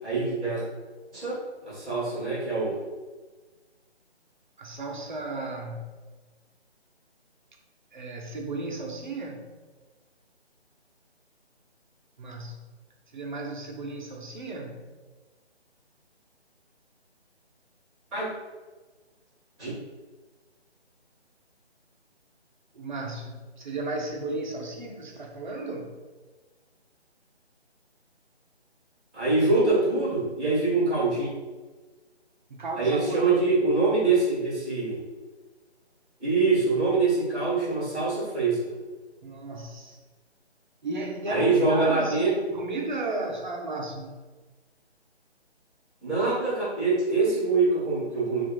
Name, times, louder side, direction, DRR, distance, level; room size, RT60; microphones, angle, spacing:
voice 1, 0.0-0.6 1.1-1.4 1.6-2.8 18.1-18.3 19.6-19.7 29.1-31.3 32.8-35.0 36.2-38.6 41.3-42.3 46.0-48.4, right 3 dB, ahead, -19 dB, 0.7 m, -24 dB
voice 2, 4.6-5.9 7.9-9.5 12.2-12.7 13.1-14.8 22.7-25.9 32.5-33.5 39.2-40.0 40.8-44.2, right 2 dB, 45° right, 1 dB, 0.8 m, -34 dB
4.2 x 2.6 x 4.4 m, 1.3 s
figure-of-eight pair, 155°, 34 cm